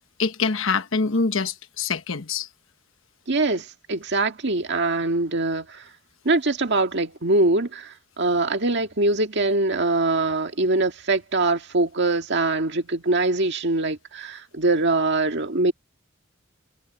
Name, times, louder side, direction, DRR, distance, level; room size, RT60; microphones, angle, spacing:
voice 1, 0.2-2.5, left 4 dB, 70° left, 1.2 m, -24 dB
voice 2, 3.3-5.8 6.3-15.7, right 2 dB, 55° right, 1.9 m, -23 dB
head